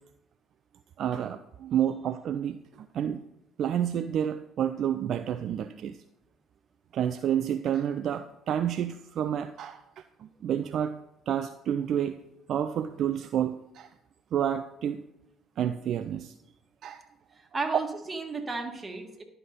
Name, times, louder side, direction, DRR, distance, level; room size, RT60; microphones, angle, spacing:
voice 1, 1.0-3.2 3.6-6.0 6.9-10.9 11.3-12.2 12.5-13.9 14.3-15.0 15.6-16.3 16.8-17.0, right 9 dB, 55° right, 11 dB, 0.3 m, -29 dB
voice 2, 17.3-19.2, right 3 dB, 30° right, 3 dB, 1.7 m, -33 dB
11.0 x 5.6 x 4.0 m, 0.86 s
hypercardioid pair, 50°, 0 cm